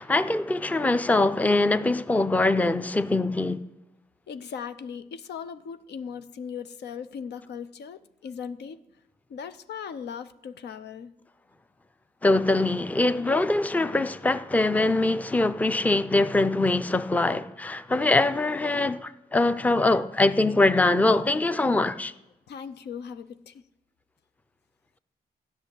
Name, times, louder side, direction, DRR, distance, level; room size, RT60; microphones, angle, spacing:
voice 1, 0.0-3.6 12.2-22.1, left 2 dB, 10° left, 0.5 m, -23 dB
voice 2, 4.3-8.8 9.3-11.1 22.5-23.6, left 7 dB, 90° left, 0.7 m, -38 dB
14.0 x 6.4 x 9.9 m
wide cardioid pair, 115°, 17 cm